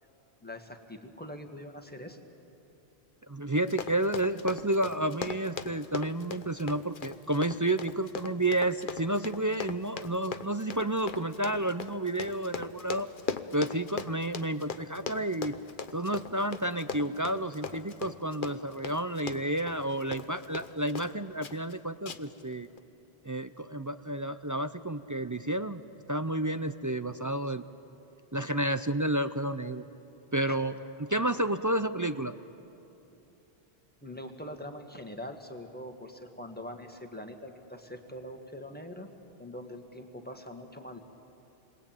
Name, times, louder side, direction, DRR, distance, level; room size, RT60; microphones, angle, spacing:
voice 1, 0.4-2.2 30.5-30.6 34.0-39.1 39.4-41.0, left 1 dB, 10° left, 4 dB, 1.8 m, -43 dB
voice 2, 3.3-13.1 13.5-15.6 15.9-22.7 23.2-25.8 26.1-27.6 28.3-29.8 30.3-30.7 31.0-32.3, right 1 dB, 25° right, 10 dB, 0.4 m, -30 dB
Run, 3.5-21.1 21.4-21.7 22.0-22.4 22.8-22.9, left 5 dB, 55° left, 1.0 m, -39 dB
28.5 x 22.0 x 9.0 m, 2.9 s
omnidirectional pair, 1.1 m